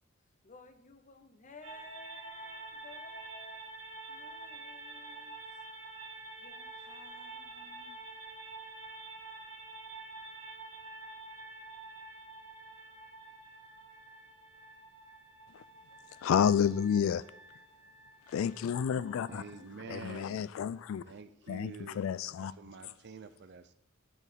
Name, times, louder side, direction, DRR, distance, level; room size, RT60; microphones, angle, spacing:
voice 1, 0.4-3.6 4.1-5.4 6.4-8.0, left 3 dB, 40° left, 0.7 m, -55 dB
sound 1, 1.6-20.0, right 2 dB, 80° right, 1.7 m, -48 dB
voice 2, 16.2-17.2 18.3-21.2 21.5-22.9, left 8 dB, 70° left, 0.3 m, -31 dB
voice 3, 19.3-20.3 21.1-22.0 22.6-23.7, right 4 dB, 55° right, 0.5 m, -47 dB
9.8 x 4.1 x 5.2 m
head